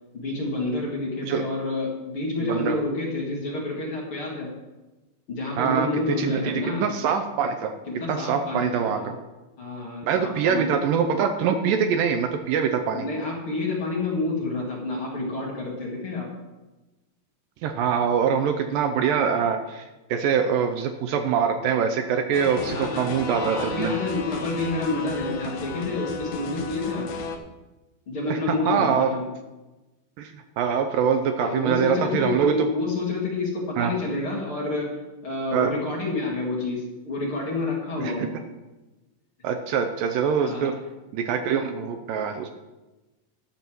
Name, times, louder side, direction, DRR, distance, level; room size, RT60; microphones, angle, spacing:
voice 1, 0.1-4.6 5.3-6.9 7.9-9.1 9.6-10.8 12.9-16.3 22.7-23.1 23.4-27.1 28.1-29.3 31.4-38.3 40.4-40.8, left 2 dB, 40° left, -3 dB, 2.5 m, -29 dB
voice 2, 2.4-2.8 5.6-5.9 6.2-7.7 8.1-9.1 10.0-13.1 17.6-19.9 20.1-23.9 28.3-29.1 30.2-30.3 30.6-32.7 33.8-33.9 35.5-35.7 38.0-38.1 39.4-40.7 41.1-42.5, right 7 dB, 75° right, 7 dB, 2.3 m, -24 dB
sound 1, 22.3-27.4, left 4 dB, 65° left, 1.8 m, -34 dB
11.5 x 7.0 x 6.1 m, 1.1 s
omnidirectional pair, 4.2 m